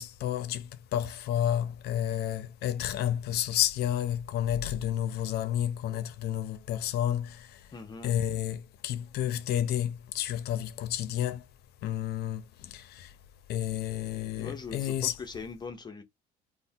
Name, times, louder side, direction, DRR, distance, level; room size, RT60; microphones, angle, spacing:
voice 1, 0.0-7.7 8.0-11.5 11.8-13.2 13.5-15.1, left 11 dB, 70° left, 0.5 m, -31 dB
voice 2, 7.7-8.1 14.4-16.0, left 5 dB, 25° left, 0.5 m, -41 dB
3.2 x 2.1 x 2.7 m
cardioid pair, 110°, 17 cm